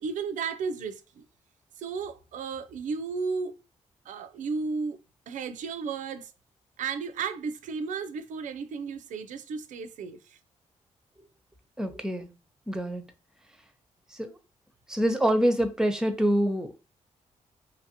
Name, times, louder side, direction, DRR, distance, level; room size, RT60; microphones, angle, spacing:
voice 1, 0.0-1.2 1.8-3.6 4.1-5.0 5.3-6.3 6.8-10.2, right 5 dB, 75° right, 0.4 m, -33 dB
voice 2, 11.8-12.3 12.7-13.0 14.1-14.4 14.9-16.9, equal, 5° right, 0.6 m, -26 dB
2.8 x 2.5 x 2.8 m
cardioid pair, 65°, 13 cm